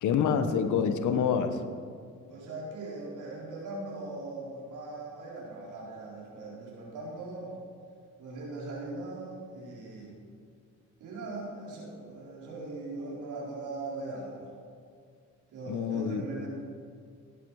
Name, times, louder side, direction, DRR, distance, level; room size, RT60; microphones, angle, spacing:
voice 1, 0.0-1.6 15.7-16.2, left 7 dB, 75° left, 9 dB, 1.1 m, -27 dB
voice 2, 2.3-7.5 8.2-10.1 11.0-14.5 15.5-16.5, right 2 dB, 80° right, -4 dB, 4.2 m, -40 dB
16.0 x 10.5 x 4.8 m, 2.2 s
cardioid pair, 90°, 30 cm